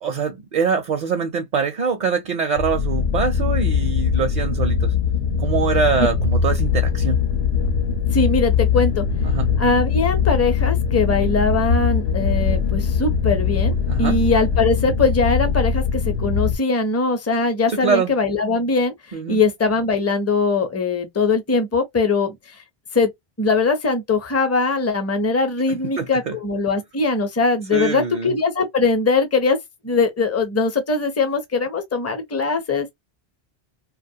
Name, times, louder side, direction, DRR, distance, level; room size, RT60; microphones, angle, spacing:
voice 1, 0.0-4.9 5.4-7.2 9.2-9.5 13.9-14.2 17.7-18.1 19.1-19.4 25.7-26.4 27.7-28.3, right 6 dB, 55° right, 0.5 m, -24 dB
sound 1, 2.6-16.6, left 6 dB, 85° left, 0.8 m, -21 dB
voice 2, 8.1-9.1 9.6-18.9 19.3-22.6 22.9-23.1 23.4-29.6 29.8-32.9, left 3 dB, 20° left, 0.5 m, -21 dB
2.4 x 2.2 x 2.7 m
omnidirectional pair, 1.0 m